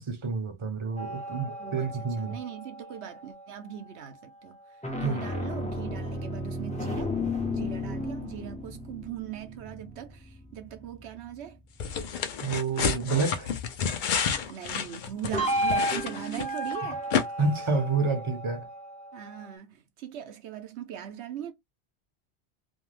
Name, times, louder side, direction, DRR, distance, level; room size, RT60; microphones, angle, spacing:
voice 1, 0.0-2.4 5.0-5.2 12.4-13.5 17.4-18.7, right 4 dB, 30° right, 0.6 m, -29 dB
sound 1, 1.0-3.6 4.6-11.5 15.3-19.5, left 1 dB, 10° left, 0.4 m, -34 dB
voice 2, 1.4-4.6 5.0-7.1 7.5-11.6 14.5-17.0 19.1-21.5, right 10 dB, 70° right, 0.9 m, -40 dB
sound 2, 11.8-16.7 17.1-17.2, left 7 dB, 55° left, 0.6 m, -30 dB
2.6 x 2.2 x 3.1 m
omnidirectional pair, 1.2 m